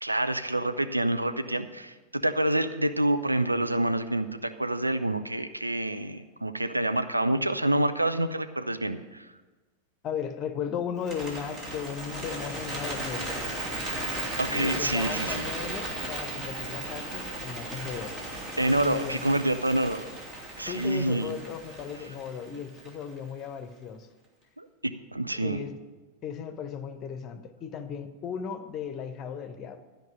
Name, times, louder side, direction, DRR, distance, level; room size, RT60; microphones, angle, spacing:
voice 1, 0.0-9.3 14.4-15.4 18.6-20.1 20.6-21.3 24.6-25.6, right 1 dB, 85° right, 10 dB, 0.5 m, -27 dB
voice 2, 10.0-13.4 14.5-18.2 18.8-19.2 20.7-24.1 25.3-25.7 26.2-29.8, left 7 dB, 30° left, 10 dB, 0.9 m, -36 dB
Bird, 11.0-23.2, right 1 dB, 30° right, 2.8 m, -36 dB
12.5 x 5.4 x 8.8 m, 1.2 s
figure-of-eight pair, 90°, 0 cm